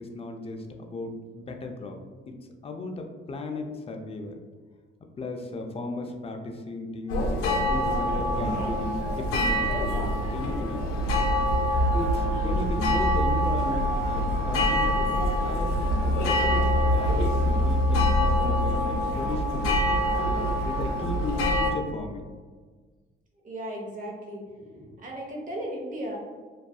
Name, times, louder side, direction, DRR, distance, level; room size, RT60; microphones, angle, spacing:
voice 1, 0.0-2.0 2.3-2.4 2.6-4.4 5.2-11.1 11.9-15.2 15.4-20.1 20.6-22.3, left 2 dB, 30° left, 3 dB, 0.4 m, -36 dB
sound 1, 7.1-21.7, equal, 85° left, 0.5 m, -25 dB
voice 2, 23.4-24.4 24.7-26.2, right 1 dB, 40° right, -1 dB, 0.8 m, -36 dB
2.6 x 2.3 x 2.2 m, 1.5 s
cardioid pair, 80°, 21 cm